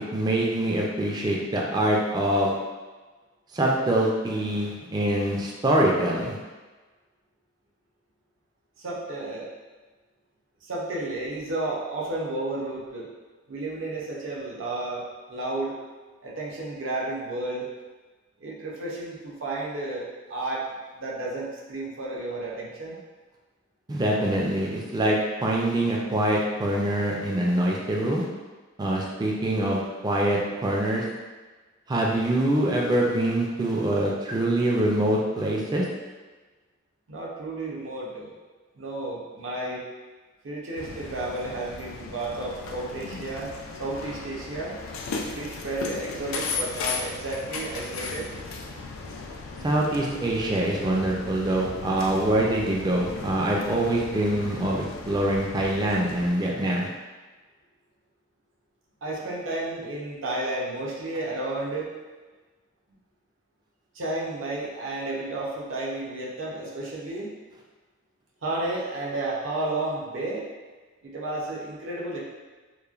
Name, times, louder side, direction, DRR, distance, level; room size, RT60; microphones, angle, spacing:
voice 1, 0.0-2.5 3.5-6.4 23.9-28.3 28.8-31.0 31.9-35.9 49.6-56.9, right 1 dB, 20° right, -2 dB, 0.3 m, -24 dB
voice 2, 8.8-9.5 10.6-13.1 13.5-15.8 16.2-17.7 18.4-20.6 21.0-23.0 37.1-38.3 38.7-39.8 40.4-43.5 43.8-44.7 45.3-48.3 59.0-61.9 63.9-67.3 68.4-70.5 71.0-72.2, right 2 dB, 75° right, -4 dB, 0.6 m, -32 dB
sound 1, 40.8-56.3, left 4 dB, 90° left, 0.3 m, -36 dB
3.0 x 2.1 x 2.3 m, 1.3 s
head